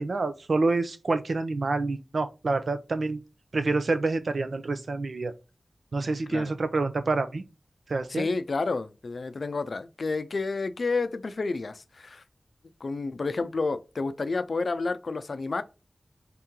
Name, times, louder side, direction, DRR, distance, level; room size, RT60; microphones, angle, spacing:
voice 1, 0.0-3.2 3.5-5.3 5.9-7.4 7.9-8.3, right 3 dB, 75° right, 0.5 m, -27 dB
voice 2, 8.1-12.2 12.8-15.6, left 3 dB, 70° left, 0.4 m, -30 dB
3.6 x 2.8 x 3.6 m
cardioid pair, 40°, 0 cm